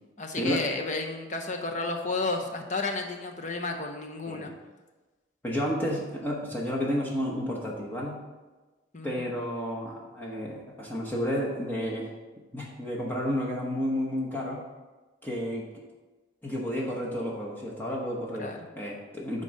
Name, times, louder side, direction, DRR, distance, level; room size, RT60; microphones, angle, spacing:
voice 1, 0.2-4.5 8.9-9.3 18.4-18.7, left 3 dB, 40° left, 4 dB, 0.8 m, -32 dB
voice 2, 5.4-8.2 9.0-12.1 12.5-14.6 15.2-15.8 16.4-19.4, equal, 10° left, -4 dB, 1.0 m, -31 dB
9.1 x 3.9 x 5.3 m, 1.2 s
head